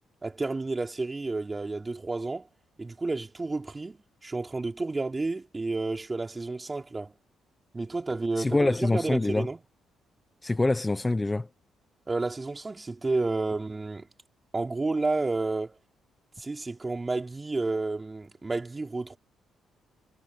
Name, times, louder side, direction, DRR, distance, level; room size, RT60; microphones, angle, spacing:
voice 1, 0.2-2.5 2.8-7.1 7.7-9.6 12.1-14.1 14.5-15.8 16.4-19.2, right 3 dB, 20° right, 4.4 m, -31 dB
voice 2, 8.4-9.5 10.4-11.5, left 2 dB, 15° left, 0.9 m, -25 dB
cardioid pair, 90°, 0 cm